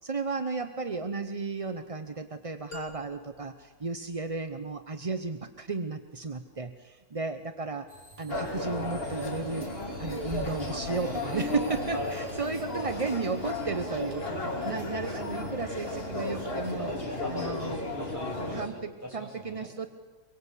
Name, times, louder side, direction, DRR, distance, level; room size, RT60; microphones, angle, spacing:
voice 1, 0.0-7.9 8.2-9.7 10.0-14.3 14.6-16.9 17.3-17.8 18.5-19.9, right 4 dB, 30° right, 8 dB, 0.7 m, -34 dB
sound 1, 2.7-4.8, left 3 dB, 75° left, 4.7 m, -48 dB
sound 2, 7.9-17.0, right 3 dB, 55° right, 4.0 m, -54 dB
sound 3, 8.3-18.7, left 2 dB, 35° left, 3.0 m, -34 dB
voice 2, 16.8-18.6 19.0-19.7, equal, 10° right, -2 dB, 7.4 m, -40 dB
25.0 x 23.0 x 8.3 m, 1.3 s
omnidirectional pair, 1.7 m